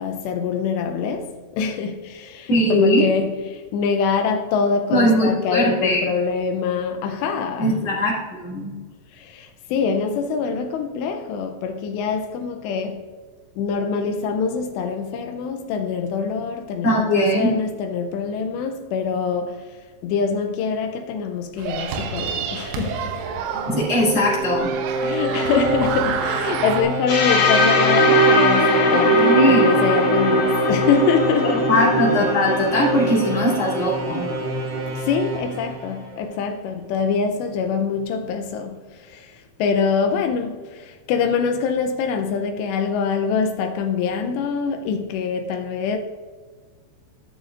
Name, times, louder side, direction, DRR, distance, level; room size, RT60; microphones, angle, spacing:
voice 1, 0.0-7.8 9.1-13.1 13.6-23.2 25.0-31.7 32.2-32.3 35.0-46.0, left 5 dB, 85° left, 2.5 m, -24 dB
voice 2, 2.5-3.0 4.9-6.0 7.6-8.8 16.8-17.5 23.7-24.7 29.1-29.6 31.7-34.3, equal, 30° left, 2.9 m, -20 dB
sound 1, 21.6-26.8, right 6 dB, 85° right, 3.4 m, -29 dB
sound 2, 23.4-36.5, right 1 dB, 65° right, 2.0 m, -28 dB
sound 3, 27.1-34.9, equal, 55° left, 2.5 m, -20 dB
14.0 x 6.4 x 2.5 m
omnidirectional pair, 5.5 m